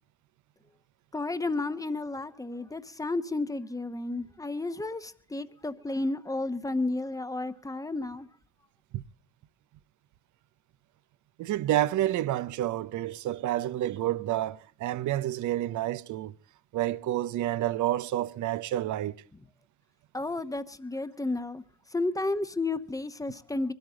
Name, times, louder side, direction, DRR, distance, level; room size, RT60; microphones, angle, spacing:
voice 1, 1.1-8.3 20.1-21.6 21.9-23.7, left 2 dB, 10° left, 0.9 m, -32 dB
voice 2, 11.4-16.3 16.7-19.1, right 13 dB, 75° right, 0.7 m, -29 dB
22.5 x 13.0 x 3.8 m
cardioid pair, 90°, 30 cm